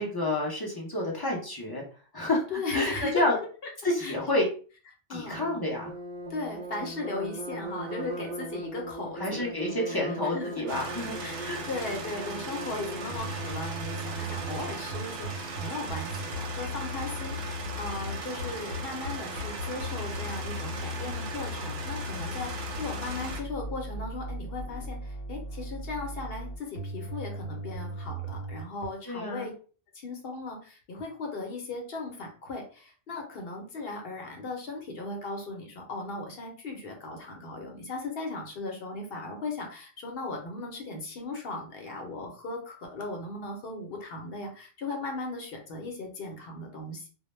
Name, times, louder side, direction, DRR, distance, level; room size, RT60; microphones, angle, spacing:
voice 1, 0.0-1.8 2.1-2.4 2.7-3.3 3.8-4.5 5.1-5.9 9.2-11.1 11.4-11.7 29.1-29.5, left 1 dB, 35° left, -2 dB, 0.4 m, -29 dB
voice 2, 2.5-3.7 4.0-4.1 5.1-5.4 6.3-10.4 11.2-29.5 29.9-47.1, left 3 dB, 60° left, 2 dB, 0.8 m, -37 dB
sound 1, 5.3-14.9, right 2 dB, 90° right, 0.3 m, -40 dB
sound 2, 10.7-23.4, right 3 dB, 65° right, 0.7 m, -38 dB
sound 3, 13.1-28.9, left 1 dB, 85° left, 1.0 m, -37 dB
2.1 x 2.1 x 3.0 m, 0.39 s
omnidirectional pair, 1.2 m